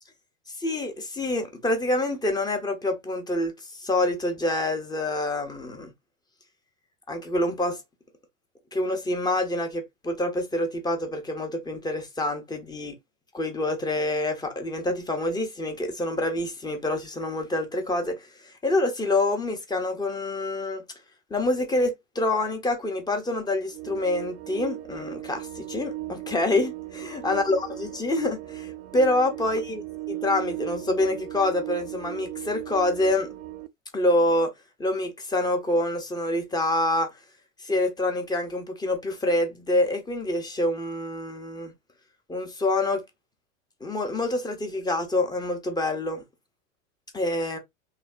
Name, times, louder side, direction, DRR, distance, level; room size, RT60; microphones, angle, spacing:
voice 1, 0.6-5.9 7.1-7.8 8.7-12.9 13.3-20.8 21.3-29.8 30.1-33.3 33.9-34.5 34.8-37.1 37.6-41.7 42.3-43.0 43.8-46.2 47.1-47.6, left 2 dB, 10° left, 0.6 m, -26 dB
sound 1, 23.7-33.7, right 16 dB, 40° right, 0.4 m, -37 dB
3.2 x 2.1 x 2.2 m
figure-of-eight pair, 85°, 38 cm